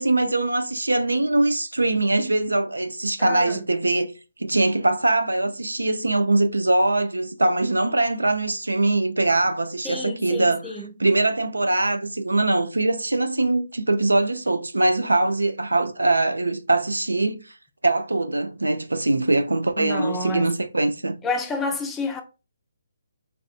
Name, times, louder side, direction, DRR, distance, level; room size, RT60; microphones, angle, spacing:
voice 1, 0.0-4.1 4.4-10.6 11.0-17.4 17.8-21.2, right 2 dB, 85° right, 0.4 m, -22 dB
voice 2, 3.2-3.6 9.8-10.9 19.8-20.5 21.2-22.2, left 2 dB, 10° left, 0.4 m, -29 dB
3.5 x 2.5 x 2.4 m
figure-of-eight pair, 140°, 0 cm